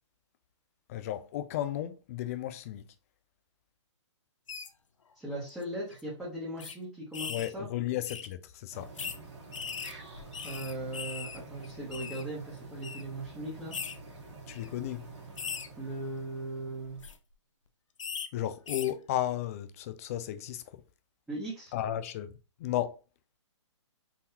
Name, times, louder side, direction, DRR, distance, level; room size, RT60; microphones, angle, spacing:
voice 1, 0.9-2.8 7.3-8.9 14.5-15.1 18.3-20.6 21.7-22.3 22.6-23.0, left 12 dB, 30° left, 0.3 m, -34 dB
sound 1, 4.5-4.7 5.5-5.6 5.9-6.0 6.6-6.7 7.1-7.5 8.1-8.3 9.0-9.2 9.5-11.4 11.6-12.2 12.8-13.0 13.7-13.9 14.5-14.7 15.4-15.7 16.8-17.1 18.0-18.3 18.7-18.9, left 6 dB, 80° left, 0.5 m, -39 dB
voice 2, 5.1-7.7 10.4-13.7 15.8-17.0 21.3-21.7, right 1 dB, 5° right, 1.0 m, -38 dB
sound 2, 8.7-17.1, right 3 dB, 65° right, 1.4 m, -48 dB
3.9 x 2.7 x 2.7 m
hypercardioid pair, 140°, 16 cm